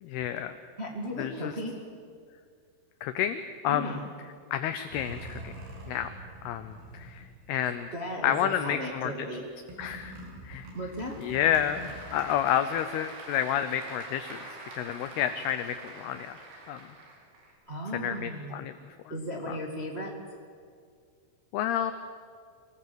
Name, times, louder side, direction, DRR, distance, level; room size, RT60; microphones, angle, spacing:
voice 1, 0.0-0.6 1.2-1.5 3.0-4.0 4.5-5.6 5.9-6.1 6.4-7.9 8.2-9.3 9.8-10.2 10.4-10.7 11.2-16.3 16.7-16.9 18.0-18.7 19.5-19.6 21.5-21.9, left 10 dB, 80° left, 10 dB, 2.3 m, -30 dB
voice 2, 0.8-1.8 3.7-4.0 7.9-9.5 10.7-11.2 17.7-18.6 19.1-20.1, equal, 25° right, 0 dB, 1.3 m, -36 dB
sound 1, 4.9-7.9 8.2-8.8 9.7-12.2, right 2 dB, 55° right, 7.2 m, -45 dB
Applause / Crowd, 10.8-17.5, right 2 dB, 75° right, 6.0 m, -46 dB
26.0 x 19.0 x 7.9 m, 2.1 s
omnidirectional pair, 5.5 m